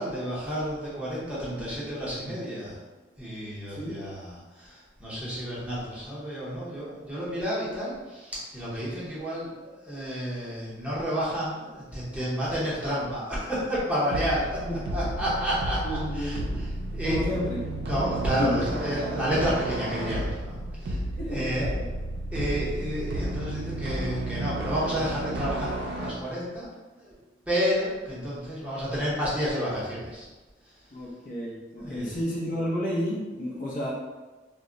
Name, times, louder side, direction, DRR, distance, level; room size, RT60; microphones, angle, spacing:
voice 1, 0.0-2.8 3.2-14.6 14.9-16.4 16.9-17.2 17.9-21.0 21.3-21.8 22.3-26.7 27.0-27.1 27.5-30.3 31.8-32.2, equal, 5° right, -8 dB, 0.7 m, -30 dB
sound 1, 14.1-26.1, right 1 dB, 60° right, 0.4 m, -32 dB
voice 2, 15.8-16.3 17.0-17.6 18.4-18.5 20.8-21.9 30.9-33.9, equal, 45° left, -5 dB, 0.6 m, -31 dB
2.2 x 2.0 x 3.7 m, 1.2 s
head